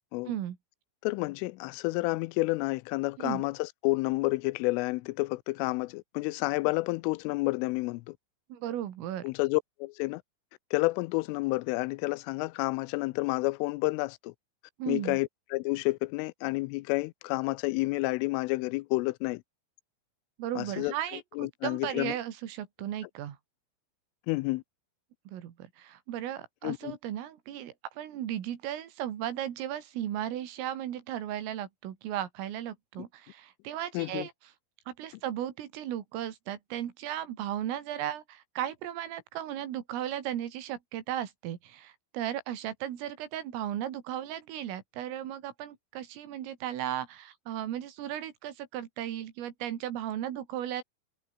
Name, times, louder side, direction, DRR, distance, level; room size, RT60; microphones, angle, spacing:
voice 1, 0.3-0.6 3.2-3.4 8.5-9.3 14.8-15.2 20.4-23.4 25.3-34.3 34.9-50.8, right 11 dB, 90° right, 5.1 m, -36 dB
voice 2, 1.0-8.2 9.2-10.2 10.7-14.3 14.9-19.4 20.6-20.9 21.4-22.1 24.3-24.6 26.6-27.0 33.9-34.3, left 23 dB, 85° left, 3.2 m, -30 dB
omnidirectional pair, 5.7 m